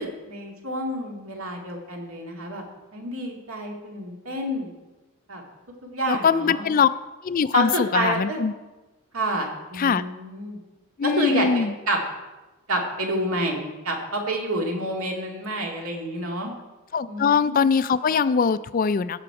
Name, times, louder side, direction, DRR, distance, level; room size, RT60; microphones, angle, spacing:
voice 1, 0.0-2.6 2.9-4.7 5.3-5.4 5.9-6.7 7.5-8.4 9.1-10.6 11.0-12.0 12.7-16.5 17.1-17.7, right 1 dB, 70° right, 0 dB, 2.1 m, -28 dB
voice 2, 6.1-6.9 7.2-8.5 9.8-10.0 11.0-11.7 16.9-19.2, left 6 dB, 40° left, 15 dB, 0.3 m, -22 dB
17.0 x 6.0 x 4.8 m, 1.1 s
head